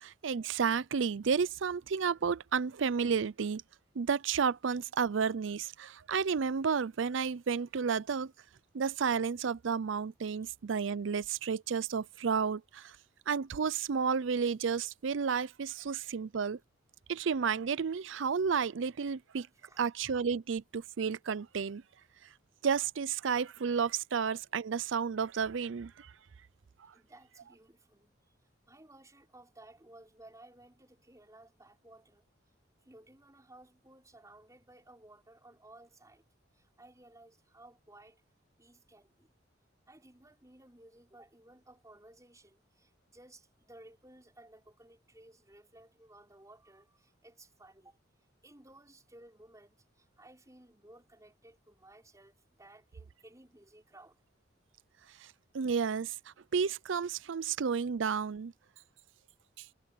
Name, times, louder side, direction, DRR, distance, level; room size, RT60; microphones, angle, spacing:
voice 1, 0.0-3.6 4.0-8.3 8.7-12.8 13.3-16.6 17.1-19.5 19.8-21.8 22.6-26.1 55.5-56.1 56.5-58.5, right 6 dB, 70° right, 0.5 m, -31 dB
voice 2, 26.9-28.1 28.7-32.3 32.9-36.2 36.5-38.2 38.6-39.3 39.9-48.0 48.4-54.2, right 1 dB, 15° right, 5.7 m, -57 dB
head